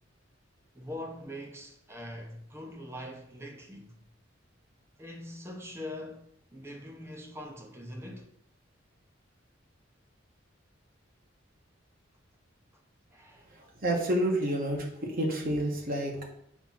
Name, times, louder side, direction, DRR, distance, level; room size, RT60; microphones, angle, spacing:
voice 1, 0.7-3.9 5.0-8.3 13.1-13.5, left 1 dB, 15° right, 0.9 m, -43 dB
voice 2, 13.5-16.2, right 1 dB, 50° right, 1.5 m, -29 dB
7.0 x 2.9 x 5.6 m
head